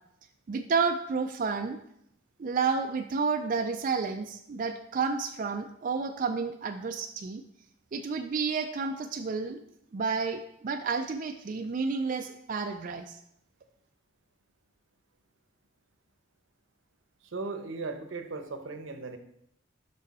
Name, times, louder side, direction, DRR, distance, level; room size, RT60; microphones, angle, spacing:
voice 1, 0.5-1.8 2.4-7.4 7.9-9.6 9.9-13.2, right 5 dB, 40° right, 5 dB, 0.4 m, -30 dB
voice 2, 17.2-19.2, right 3 dB, 85° right, 7 dB, 0.8 m, -37 dB
6.2 x 5.4 x 4.2 m, 0.74 s
head